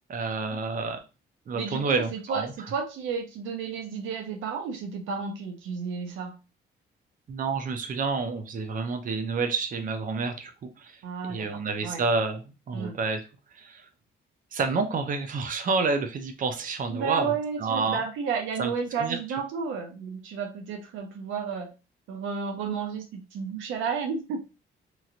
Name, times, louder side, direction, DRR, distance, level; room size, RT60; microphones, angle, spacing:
voice 1, 0.1-1.0 1.5-2.5 7.3-11.0 11.3-13.2 13.5-13.9 14.5-17.3 17.6-18.0 18.6-18.7 19.0-19.2, right 4 dB, 45° right, 6 dB, 0.6 m, -29 dB
voice 2, 1.5-6.4 11.0-12.0 12.7-13.0 16.9-21.7 22.1-24.4, right 6 dB, 90° right, 5 dB, 0.7 m, -32 dB
3.0 x 2.8 x 2.4 m, 0.30 s
cardioid pair, 90°, 20 cm